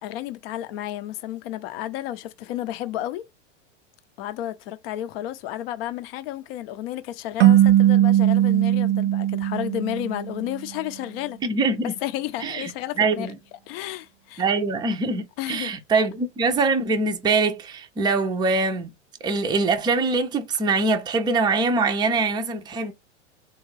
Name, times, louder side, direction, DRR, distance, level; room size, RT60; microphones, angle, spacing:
voice 1, 0.0-3.3 4.2-11.4 12.0-13.3 13.7-14.4 15.4-15.7, left 13 dB, 55° left, 0.6 m, -32 dB
sound 1, 7.4-10.6, right 12 dB, 75° right, 0.5 m, -19 dB
voice 2, 11.4-11.9 12.4-12.7 13.0-13.4 14.4-18.9 19.2-22.9, right 3 dB, 10° right, 0.4 m, -23 dB
3.6 x 2.3 x 3.1 m
hypercardioid pair, 115°, 35 cm